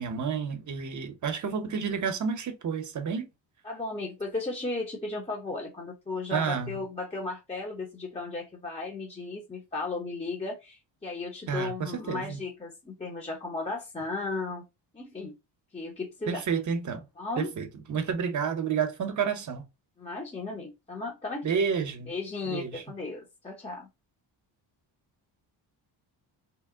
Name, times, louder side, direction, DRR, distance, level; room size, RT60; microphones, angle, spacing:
voice 1, 0.0-3.3 6.3-6.8 11.5-12.4 16.3-17.1 17.4-19.6 21.4-22.1 22.4-22.8, right 6 dB, 40° right, 0.7 m, -30 dB
voice 2, 3.6-14.6 14.9-15.3 15.7-16.4 17.2-17.5 20.0-21.4 22.1-23.9, left 3 dB, 15° left, 0.6 m, -35 dB
2.9 x 2.0 x 3.5 m
cardioid pair, 105°, 47 cm